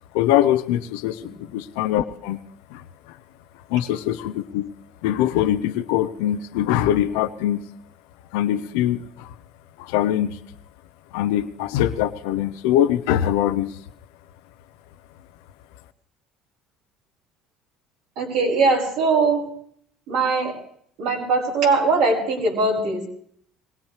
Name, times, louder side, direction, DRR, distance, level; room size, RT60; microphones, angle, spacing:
voice 1, 0.1-2.4 2.7-3.2 3.7-4.7 5.0-7.6 8.3-9.3 9.8-10.4 11.1-13.8, left 11 dB, 85° left, 11 dB, 0.7 m, -23 dB
voice 2, 18.2-19.5 20.1-20.6 21.0-23.1, right 3 dB, 75° right, -3 dB, 5.8 m, -21 dB
21.0 x 18.0 x 3.3 m, 0.65 s
supercardioid pair, 95°, 0 cm